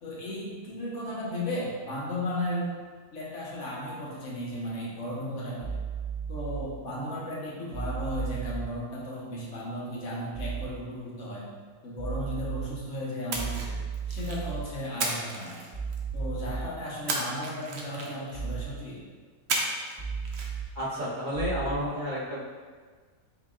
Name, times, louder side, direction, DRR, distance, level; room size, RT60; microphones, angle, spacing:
voice 1, 0.0-2.7 3.1-5.8 6.3-11.5 11.8-13.8 14.1-15.6 16.1-19.0, equal, 60° left, -5 dB, 1.2 m, -35 dB
sound 1, 5.6-6.6 7.7-8.6 10.3-10.6 12.0-12.6 13.3-14.6 15.7-16.6 18.3-18.6 20.0-20.6 21.3-21.7, right 5 dB, 10° right, 1.0 m, -34 dB
Splash splatter, 13.3-14.5 15.0-16.2 17.1-18.4 19.5-20.0 20.2-20.5, right 2 dB, 60° right, 0.8 m, -32 dB
voice 2, 20.7-22.4, equal, 35° right, -7 dB, 1.1 m, -31 dB
5.1 x 3.8 x 2.4 m, 1.5 s
omnidirectional pair, 1.5 m